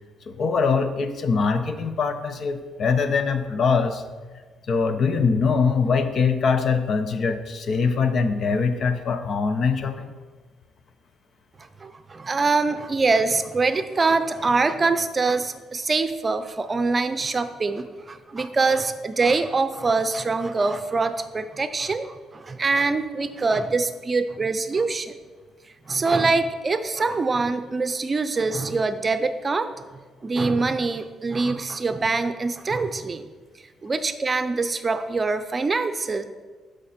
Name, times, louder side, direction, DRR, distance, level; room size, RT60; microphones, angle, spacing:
voice 1, 0.3-4.0 4.7-10.1, left 5 dB, 55° left, 9 dB, 0.8 m, -23 dB
voice 2, 11.8-25.2 25.9-29.7 30.2-33.2 33.8-36.2, right 3 dB, 30° right, 9 dB, 0.6 m, -24 dB
12.5 x 5.2 x 4.3 m, 1.4 s
cardioid pair, 90°, 0 cm